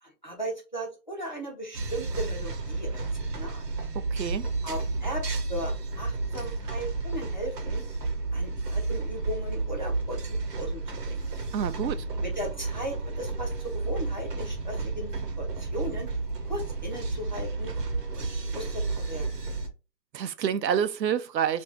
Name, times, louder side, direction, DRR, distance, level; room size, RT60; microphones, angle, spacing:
voice 1, 0.0-3.7 4.6-7.8 8.3-11.2 12.2-16.1 16.4-17.7 18.1-19.3, equal, 30° left, 0.6 m, -37 dB
sound 1, 1.7-19.7, right 3 dB, 70° right, 0.9 m, -31 dB
voice 2, 3.9-4.5 11.5-12.0 20.1-21.6, right 8 dB, 90° right, 0.6 m, -28 dB
2.8 x 2.6 x 3.3 m
hypercardioid pair, 170°, 50 cm